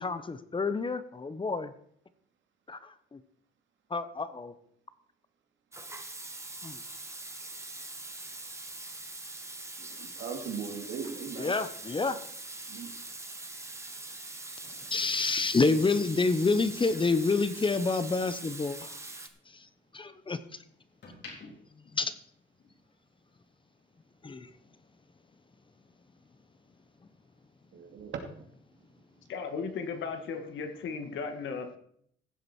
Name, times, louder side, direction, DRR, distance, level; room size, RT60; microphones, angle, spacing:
voice 1, 0.0-1.7 2.7-3.2 3.9-4.5 6.6-6.8 11.4-12.2 14.9-19.0 19.5-19.7 19.9-20.4 21.8-22.1 24.2-24.5, left 3 dB, 25° left, 1.0 m, -28 dB
Water tap faucet / Sink (filling or washing), 5.7-19.3, right 2 dB, 15° right, 1.4 m, -43 dB
voice 2, 9.8-11.6 12.7-12.9 27.7-28.2 28.7-29.2, right 6 dB, 75° right, 2.5 m, -39 dB
sound 1, 19.1-20.3 20.8-22.9 23.2-23.5, left 3 dB, 60° left, 3.9 m, -52 dB
voice 3, 29.3-31.8, left 5 dB, 75° left, 2.0 m, -36 dB
15.5 x 7.8 x 4.5 m
cardioid pair, 90°, 20 cm